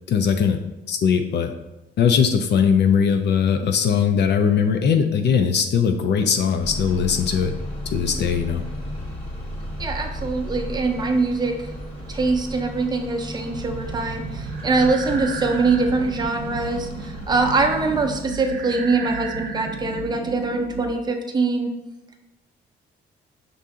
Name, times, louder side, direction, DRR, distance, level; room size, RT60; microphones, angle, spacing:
voice 1, 0.1-0.6 0.9-1.5 2.0-7.5 7.9-8.6, left 7 dB, 60° left, 6 dB, 0.4 m, -20 dB
sound 1, 6.6-18.2, equal, 30° left, 1.4 m, -34 dB
voice 2, 9.8-11.7 12.1-21.7, right 3 dB, 20° right, 4 dB, 0.6 m, -23 dB
sound 2, 13.5-20.9, right 5 dB, 60° right, 0.5 m, -34 dB
5.5 x 2.6 x 3.6 m, 0.98 s
cardioid pair, 90°, 20 cm